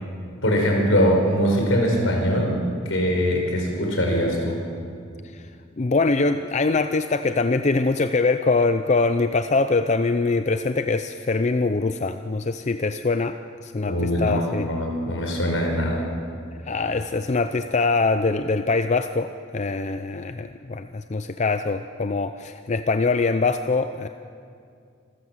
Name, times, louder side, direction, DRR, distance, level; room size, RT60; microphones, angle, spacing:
voice 1, 0.4-2.5 2.8-4.6 13.9-16.0, equal, 75° left, 1 dB, 5.0 m, -22 dB
voice 2, 5.8-14.7 16.7-24.1, left 3 dB, 35° left, 9 dB, 0.5 m, -23 dB
26.5 x 14.0 x 7.4 m, 2.4 s
head